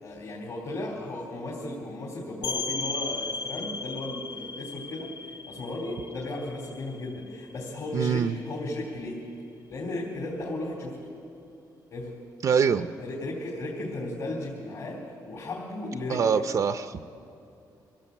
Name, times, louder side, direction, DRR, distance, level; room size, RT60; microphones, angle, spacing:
voice 1, 0.0-9.2 9.7-11.1 11.9-12.1 12.8-16.3, left 1 dB, 55° left, -3 dB, 3.5 m, -35 dB
sound 1, 2.4-7.9, left 4 dB, 75° left, 2.6 m, -36 dB
voice 2, 7.9-8.4 12.4-12.9 16.1-17.1, right 6 dB, 50° right, 9 dB, 0.6 m, -24 dB
25.5 x 16.5 x 8.4 m, 2.7 s
cardioid pair, 140°, 7 cm